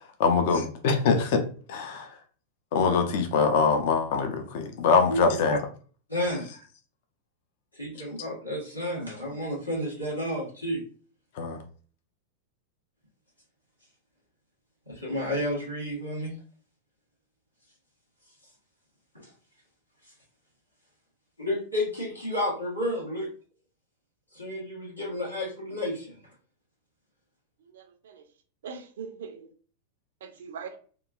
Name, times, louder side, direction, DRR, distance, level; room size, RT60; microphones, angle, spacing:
voice 1, 0.0-2.2 2.7-5.6 11.3-11.6, left 5 dB, 50° left, 0.4 m, -24 dB
voice 2, 6.1-6.6 7.7-10.8 14.9-16.3 19.1-19.3 21.4-23.3 24.3-26.2, left 1 dB, 90° left, 1.2 m, -31 dB
voice 3, 27.6-28.3 28.6-29.5 30.2-30.8, right 6 dB, 60° right, 0.4 m, -41 dB
2.9 x 2.3 x 2.4 m
figure-of-eight pair, 90°, 0 cm